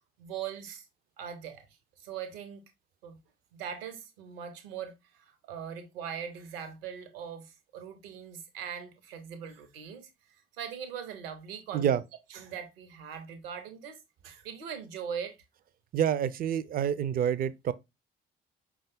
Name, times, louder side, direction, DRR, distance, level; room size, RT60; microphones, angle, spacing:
voice 1, 0.2-0.8 1.2-1.7 2.0-2.6 3.0-3.2 3.5-10.1 10.6-12.0 12.3-14.0 14.2-15.4, right 8 dB, 75° right, 0.8 m, -41 dB
voice 2, 15.9-17.7, right 9 dB, 30° right, 0.4 m, -27 dB
5.3 x 2.4 x 3.4 m
figure-of-eight pair, 45°, 29 cm